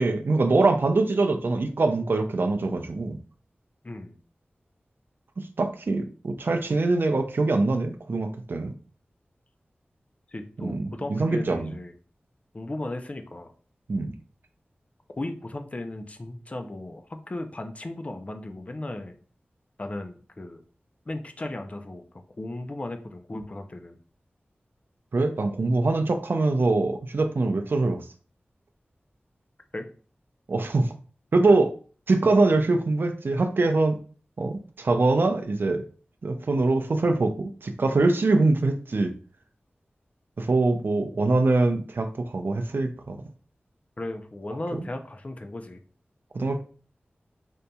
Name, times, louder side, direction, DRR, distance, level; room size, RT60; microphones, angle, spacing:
voice 1, 0.0-3.2 5.6-8.7 10.6-11.7 13.9-14.1 25.1-28.0 30.5-30.9 31.3-31.7 32.1-34.0 34.4-35.8 36.2-39.1 40.4-43.2 44.7-44.9 46.3-46.6, right 3 dB, 65° right, 0.5 m, -23 dB
voice 2, 3.8-4.2 10.3-11.9 12.5-13.5 15.2-19.1 19.8-20.6 21.1-22.0 22.4-24.0 29.7-29.9 44.0-45.8, left 2 dB, 35° left, 0.5 m, -36 dB
5.1 x 2.7 x 2.3 m
wide cardioid pair, 70°, 4 cm